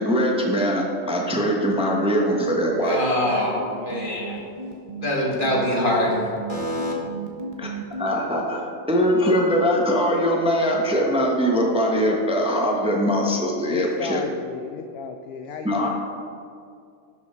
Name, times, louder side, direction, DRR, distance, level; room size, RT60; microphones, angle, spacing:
voice 1, 0.0-3.0 7.6-7.7 8.0-14.2 15.6-15.9, equal, 5° right, -1 dB, 0.9 m, -22 dB
sound 1, 2.0-8.1, right 3 dB, 30° right, 1.1 m, -35 dB
voice 2, 2.8-4.5 5.0-6.2 6.5-6.9, left 1 dB, 40° left, -3 dB, 2.0 m, -24 dB
voice 3, 13.7-15.9, left 6 dB, 65° left, 6 dB, 0.7 m, -33 dB
11.5 x 6.1 x 4.4 m, 2.4 s
omnidirectional pair, 1.3 m